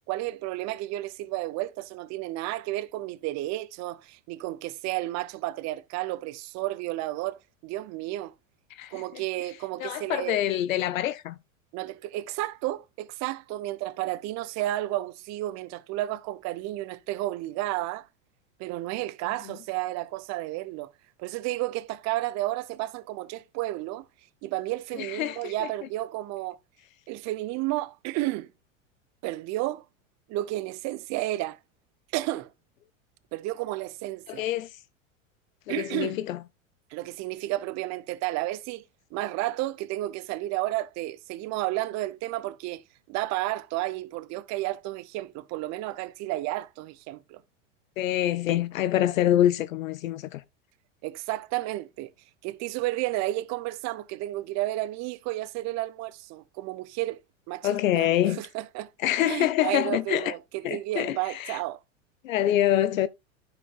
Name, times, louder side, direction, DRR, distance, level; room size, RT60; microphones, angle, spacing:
voice 1, 0.1-8.3 8.9-10.4 11.7-18.1 18.6-20.9 21.2-24.1 24.4-26.6 27.1-28.5 29.2-29.8 30.3-31.6 32.1-32.5 33.3-34.4 35.7-36.2 36.9-38.8 39.1-42.8 43.1-47.4 51.0-52.1 52.4-57.2 57.5-58.9 59.2-61.8, right 17 dB, 45° right, 0.8 m, -32 dB
voice 2, 8.7-9.0 9.8-11.4 24.9-25.7 34.3-34.8 35.7-36.4 48.0-50.4 57.6-58.4 59.0-60.3 60.6-61.6 62.2-63.1, left 12 dB, 80° left, 0.6 m, -26 dB
9.9 x 6.9 x 2.4 m
hypercardioid pair, 100°, 39 cm